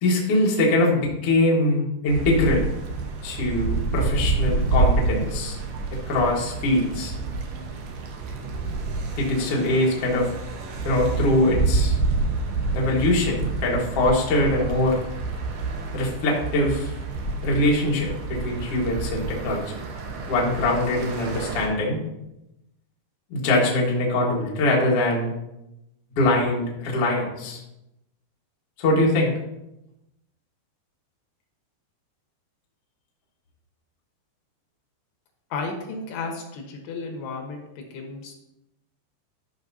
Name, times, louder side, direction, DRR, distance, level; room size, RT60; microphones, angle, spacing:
voice 1, 0.0-2.7 3.2-5.6 6.1-7.1 9.2-10.3 10.8-12.0 12.7-15.0 15.9-16.9 17.4-19.8 20.3-22.0 23.3-25.3 26.2-27.6 28.8-29.3, left 1 dB, 50° left, -3 dB, 1.8 m, -22 dB
sound 1, 2.1-21.7, right 3 dB, 70° right, 2.2 m, -28 dB
voice 2, 35.5-38.3, left 4 dB, 75° left, 1 dB, 3.3 m, -33 dB
12.5 x 5.7 x 2.7 m, 0.87 s
omnidirectional pair, 4.9 m